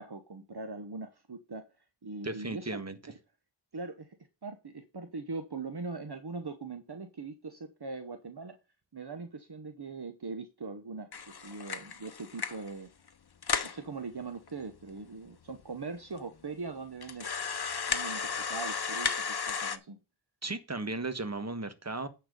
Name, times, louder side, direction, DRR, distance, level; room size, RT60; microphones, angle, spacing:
voice 1, 0.0-1.6 2.0-2.7 3.7-4.1 4.4-8.6 8.9-12.9 13.6-17.3 17.9-20.0, right 3 dB, 55° right, 7 dB, 1.1 m, -41 dB
voice 2, 2.2-3.0 20.4-22.1, right 2 dB, 35° right, 9 dB, 1.5 m, -35 dB
sound 1, 11.1-12.7 13.1-13.2 13.4-13.8 14.5-14.6 14.8-14.9 15.6-15.7 16.2-16.3 17.0-19.8, left 6 dB, 55° left, 0.8 m, -34 dB
10.0 x 4.5 x 6.8 m, 0.28 s
wide cardioid pair, 55°, 47 cm